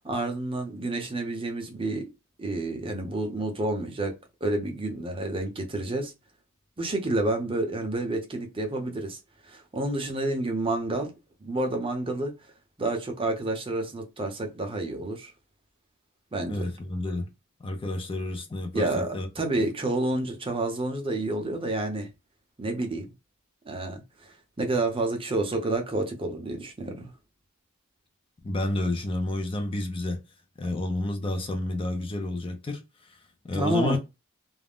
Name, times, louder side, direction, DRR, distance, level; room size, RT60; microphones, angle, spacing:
voice 1, 0.0-2.1 2.4-4.1 4.4-6.1 6.8-9.2 9.5-11.1 11.4-12.3 12.8-15.3 16.3-16.6 18.7-22.1 22.6-23.1 23.7-24.3 24.6-27.1 33.5-34.0, right 2 dB, 25° right, 0.6 m, -29 dB
voice 2, 16.5-17.3 17.6-19.3 19.6-19.7 28.4-30.2 30.6-34.0, left 2 dB, 25° left, 0.4 m, -30 dB
2.4 x 2.0 x 3.4 m
head